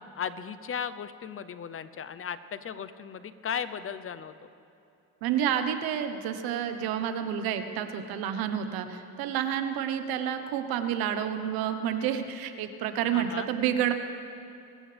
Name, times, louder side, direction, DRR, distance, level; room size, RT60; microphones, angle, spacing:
voice 1, 0.2-4.5 13.1-13.5, left 7 dB, 40° left, 13 dB, 0.8 m, -36 dB
voice 2, 5.2-13.9, right 9 dB, 80° right, 8 dB, 1.2 m, -29 dB
25.5 x 15.0 x 3.5 m, 2.7 s
cardioid pair, 95°, 36 cm